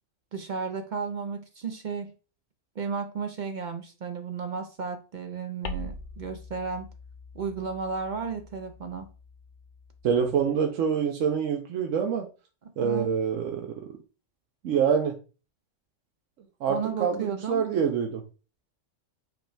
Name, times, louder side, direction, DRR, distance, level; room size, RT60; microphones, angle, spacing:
voice 1, 0.3-2.1 2.8-6.9 7.3-9.1 12.6-13.1 16.7-17.7, right 5 dB, 60° right, 0.5 m, -33 dB
sound 1, 5.6-10.5, left 2 dB, 60° left, 0.5 m, -43 dB
voice 2, 10.0-12.3 12.8-13.7 14.6-15.2 16.6-18.2, right 7 dB, 85° right, 1.0 m, -26 dB
5.0 x 2.2 x 4.6 m
omnidirectional pair, 1.3 m